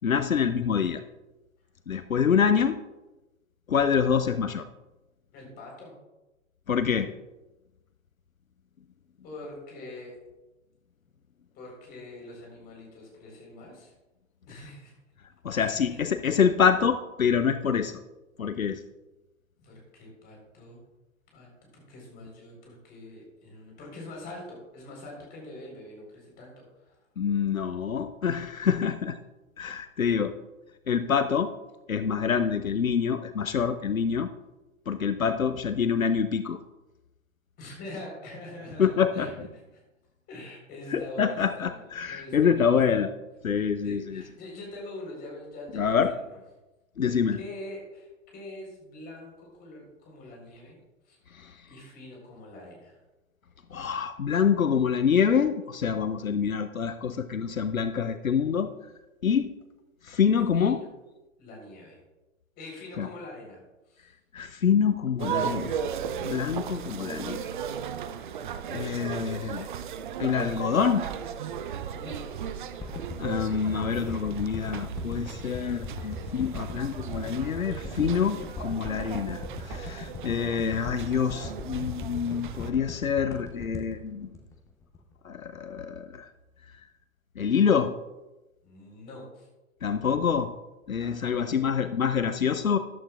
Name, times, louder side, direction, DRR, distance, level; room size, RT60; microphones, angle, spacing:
voice 1, 0.0-1.0 1.9-2.8 3.7-4.6 6.7-7.1 15.4-18.0 18.4-18.8 27.2-29.2 29.6-30.4 30.9-31.5 31.9-34.3 34.9-36.6 38.8-39.3 40.9-43.1 43.4-44.2 45.7-46.1 47.0-47.4 51.3-51.6 53.7-58.7 59.2-59.5 60.0-60.8 63.0-63.1 64.3-65.8 66.2-67.5 68.7-69.7 70.2-71.1 73.2-84.3 85.2-86.3 87.4-87.9 89.8-90.5 90.9-92.8, left 7 dB, 85° left, 11 dB, 0.6 m, -26 dB
voice 2, 5.3-5.9 9.2-10.1 11.5-13.9 14.4-14.9 15.5-16.0 19.6-20.8 21.3-27.0 37.6-39.3 40.3-41.8 42.0-43.0 43.8-46.4 47.4-50.8 51.0-51.2 51.7-53.0 60.5-60.9 61.4-62.0 62.6-63.6 63.9-64.1 71.9-72.5 88.6-89.5 91.0-91.6, left 1 dB, 25° left, -1 dB, 3.9 m, -44 dB
sound 1, 38.4-39.8, right 1 dB, 10° right, 1.4 m, -49 dB
sound 2, 65.2-82.7, right 8 dB, 40° right, 0.5 m, -36 dB
sound 3, 72.8-85.1 85.5-85.6, left 4 dB, 10° left, 0.7 m, -39 dB
13.5 x 11.5 x 2.4 m, 1.1 s
figure-of-eight pair, 115°, 40 cm